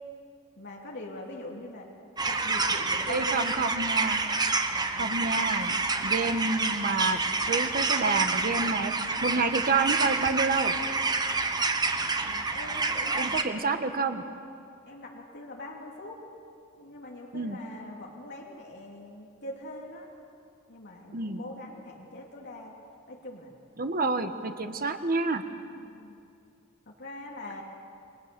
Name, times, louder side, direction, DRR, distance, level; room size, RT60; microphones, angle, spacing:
voice 1, 0.6-1.9 2.2-3.5 4.7-5.2 12.2-13.8 14.9-16.2 16.8-20.1 20.7-22.8 23.1-23.5 25.8-26.2 26.9-27.6, left 1 dB, 55° left, -2 dB, 2.7 m, -43 dB
sound 1, 2.2-13.4, right 3 dB, 20° right, 1.0 m, -28 dB
voice 2, 3.1-4.2 5.0-5.8 6.0-7.2 7.5-8.9 9.2-10.7 13.1-14.2 17.3-17.6 21.1-21.4 23.8-25.4, right 3 dB, 45° right, 8 dB, 1.4 m, -28 dB
28.5 x 22.0 x 6.9 m, 2.4 s
head